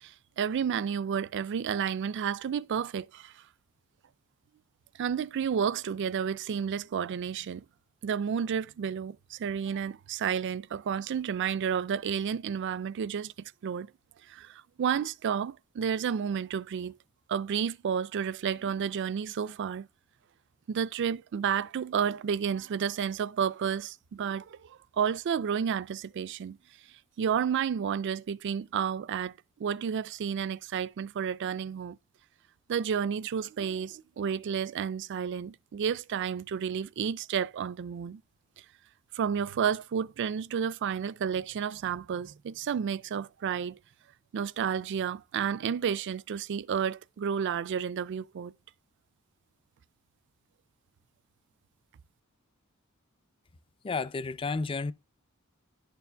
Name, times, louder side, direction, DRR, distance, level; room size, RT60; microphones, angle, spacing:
voice 1, 0.0-3.4 5.0-7.6 8.0-13.3 13.6-13.9 14.3-16.9 17.3-19.9 20.7-26.6 27.2-29.3 29.6-32.0 32.7-38.2 39.1-43.8 44.3-48.5, right 7 dB, 55° right, 0.3 m, -31 dB
voice 2, 53.8-54.9, left 4 dB, 25° left, 0.4 m, -31 dB
11.5 x 6.8 x 2.2 m
head